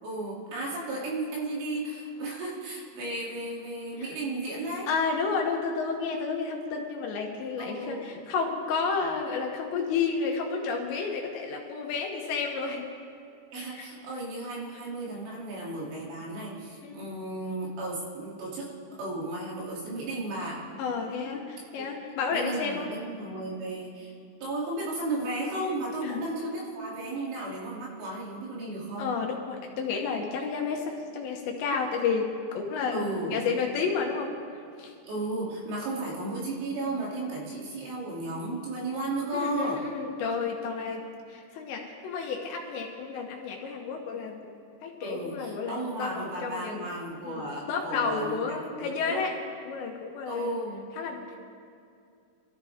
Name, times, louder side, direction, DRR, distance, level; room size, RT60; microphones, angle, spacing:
voice 1, 0.0-4.9 7.6-8.1 13.5-18.7 19.0-20.7 21.8-21.9 22.3-24.1 24.4-29.2 32.9-33.4 35.1-39.8 45.0-49.3 50.2-50.9, right 2 dB, 70° right, -5 dB, 5.2 m, -34 dB
voice 2, 4.9-12.9 13.7-13.9 16.8-17.0 20.8-22.9 26.0-26.2 29.0-34.3 34.8-34.9 39.3-44.4 44.8-46.9 47.2-49.4 49.7-50.6 51.0-51.4, left 5 dB, 75° left, 1 dB, 3.0 m, -31 dB
25.0 x 14.0 x 3.5 m, 2.5 s
omnidirectional pair, 5.8 m